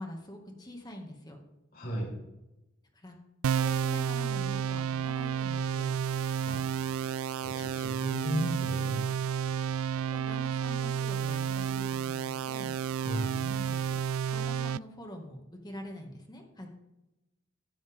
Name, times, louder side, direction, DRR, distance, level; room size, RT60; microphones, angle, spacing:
voice 1, 0.0-1.4 2.9-3.2 3.5-6.0 10.1-12.7 13.4-14.0 14.3-16.7, left 1 dB, 20° left, 1 dB, 2.2 m, -44 dB
voice 2, 1.7-2.1 6.4-6.6 7.4-9.0 13.0-13.3, equal, 45° left, -2 dB, 5.1 m, -34 dB
sound 1, 3.4-14.8, right 8 dB, 75° right, 0.3 m, -31 dB
15.5 x 12.5 x 3.7 m, 0.93 s
head